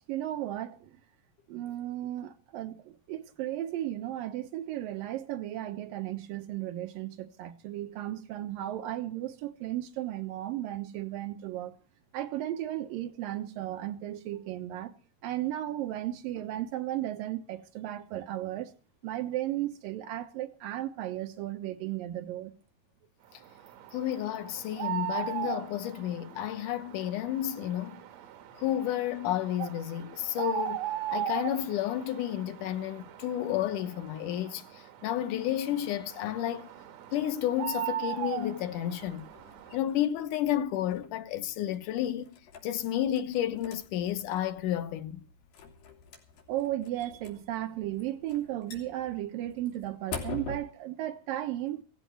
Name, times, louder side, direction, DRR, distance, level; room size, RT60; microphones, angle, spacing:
voice 1, 0.1-1.0 1.5-11.7 12.1-14.9 15.2-18.7 19.0-22.5 46.5-51.8, right 13 dB, 85° right, 3.0 m, -35 dB
sound 1, 23.4-39.8, right 13 dB, 65° right, 1.9 m, -39 dB
voice 2, 23.9-28.0 28.5-36.7 37.1-39.3 39.7-42.4 42.6-45.2, left 12 dB, 70° left, 2.3 m, -31 dB
sound 2, 39.0-50.6, left 5 dB, 90° left, 4.6 m, -46 dB
16.5 x 15.0 x 4.5 m
omnidirectional pair, 4.0 m